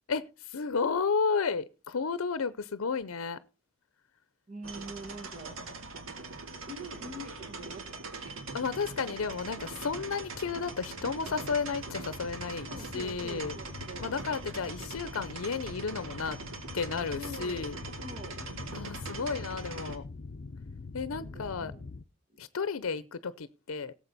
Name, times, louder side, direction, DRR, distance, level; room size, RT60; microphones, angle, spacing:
voice 1, 0.1-3.4 8.5-12.7 12.9-13.6 14.0-16.4 16.7-17.8 18.7-20.0 20.9-21.7 22.4-23.9, left 5 dB, 90° left, 0.6 m, -32 dB
voice 2, 4.5-5.7 6.7-8.4 12.7-14.1 17.1-18.4 21.1-22.0 23.0-23.1, equal, 35° right, 1.9 m, -45 dB
sound 1, 4.6-20.0, right 3 dB, 75° right, 1.8 m, -42 dB
sound 2, 8.2-22.0, left 3 dB, 45° left, 0.6 m, -46 dB
17.5 x 7.3 x 4.1 m
head